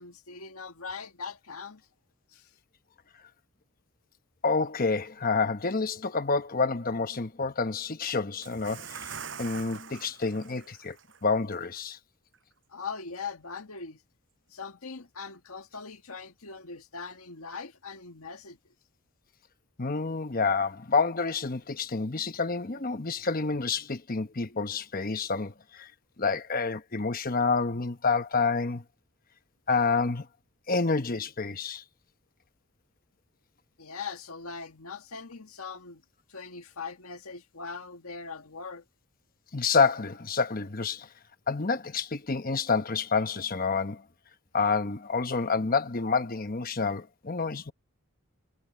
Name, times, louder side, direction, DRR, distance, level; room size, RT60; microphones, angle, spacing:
voice 1, 0.0-1.9 2.3-2.5 12.7-14.0 14.5-18.6 33.8-36.0 36.3-38.8, left 5 dB, 90° left, 1.8 m, -41 dB
voice 2, 4.4-9.1 9.4-11.0 11.2-12.0 19.8-25.9 26.2-28.8 29.7-30.3 30.7-31.8 39.5-41.1 41.5-44.0 44.5-47.7, left 4 dB, 40° left, 1.1 m, -28 dB
Bathtub (filling or washing) / Splash splatter, 8.4-11.3 11.6-11.8 12.3-12.4, right 6 dB, 60° right, 6.7 m, -43 dB
head